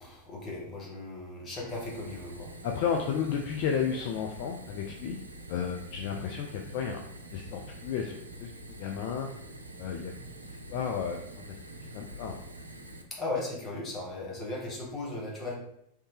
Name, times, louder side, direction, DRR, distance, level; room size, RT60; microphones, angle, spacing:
voice 1, 0.0-2.5 6.0-6.3 13.1-15.6, left 2 dB, 25° left, -2 dB, 1.2 m, -37 dB
Fire, 1.7-13.0, right 1 dB, 80° right, 0.4 m, -46 dB
voice 2, 2.6-5.2 5.5-7.0 7.3-8.1 8.4-8.5 8.8-9.3 9.8-10.1 10.7-11.2 11.9-12.3, left 7 dB, 45° left, 2 dB, 0.4 m, -32 dB
3.2 x 2.7 x 3.2 m, 0.76 s
figure-of-eight pair, 90°, 0 cm